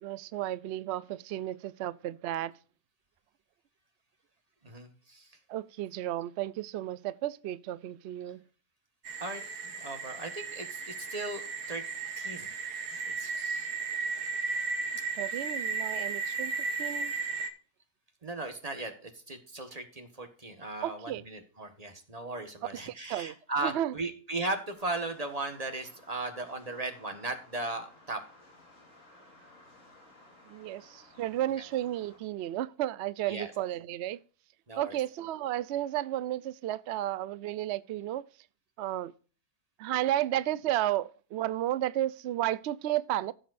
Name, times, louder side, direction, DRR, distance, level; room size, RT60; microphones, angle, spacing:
voice 1, 0.0-2.5 5.5-8.4 15.2-16.5 16.8-17.1 20.8-21.2 23.1-23.3 23.6-23.9 30.5-34.2 34.8-38.2 38.8-39.1 39.8-43.3, right 13 dB, 70° right, 0.6 m, -33 dB
voice 2, 4.6-5.4 9.2-11.4 11.7-11.8 12.2-12.5 13.2-13.7 18.2-28.2 31.5-31.7 33.3-33.5 34.7-35.0, right 2 dB, 25° right, 1.4 m, -37 dB
sound 1, 9.1-17.5, right 4 dB, 85° right, 1.7 m, -35 dB
sound 2, 24.7-32.2, left 2 dB, 55° left, 4.4 m, -57 dB
16.5 x 7.3 x 2.5 m
omnidirectional pair, 1.7 m